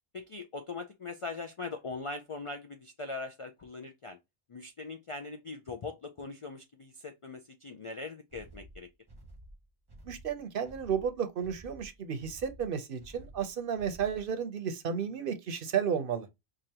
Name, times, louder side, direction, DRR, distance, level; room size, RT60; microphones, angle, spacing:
voice 1, 0.1-4.2 4.5-8.9, left 3 dB, 55° left, 0.3 m, -41 dB
sound 1, 8.3-14.4, right 1 dB, 25° right, 0.8 m, -52 dB
voice 2, 10.1-16.3, right 7 dB, 60° right, 0.8 m, -33 dB
4.8 x 2.5 x 2.8 m
omnidirectional pair, 1.1 m